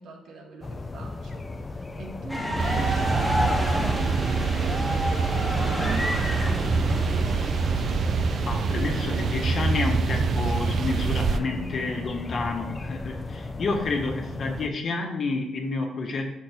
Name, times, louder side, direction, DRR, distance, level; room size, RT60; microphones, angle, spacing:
voice 1, 0.0-7.2, right 2 dB, 75° right, 0 dB, 1.6 m, -42 dB
sound 1, 0.6-14.7, left 3 dB, 25° left, 0.6 m, -36 dB
sound 2, 2.3-9.6, equal, 5° left, 1.2 m, -31 dB
sound 3, 2.6-11.4, right 5 dB, 60° right, 0.5 m, -25 dB
voice 2, 8.4-16.3, left 3 dB, 50° left, 2 dB, 1.4 m, -30 dB
6.1 x 4.4 x 5.8 m, 0.87 s
cardioid pair, 90°, 0 cm